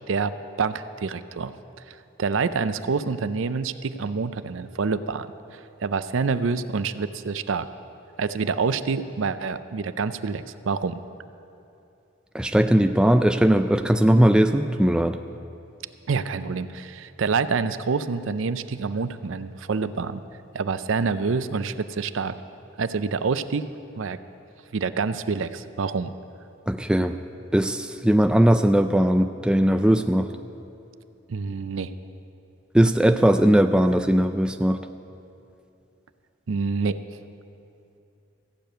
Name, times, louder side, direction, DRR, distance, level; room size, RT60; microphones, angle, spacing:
voice 1, 0.0-1.5 2.2-5.3 5.5-7.7 8.2-11.0 16.1-20.2 20.5-22.3 22.8-23.7 24.0-24.2 24.7-26.1 31.3-31.9 36.5-37.0, right 5 dB, 70° right, 12 dB, 0.5 m, -27 dB
voice 2, 12.3-15.2 26.7-27.2 27.5-30.3 32.7-34.8, right 1 dB, 5° right, 7 dB, 0.3 m, -19 dB
15.0 x 6.8 x 9.0 m, 2.7 s
head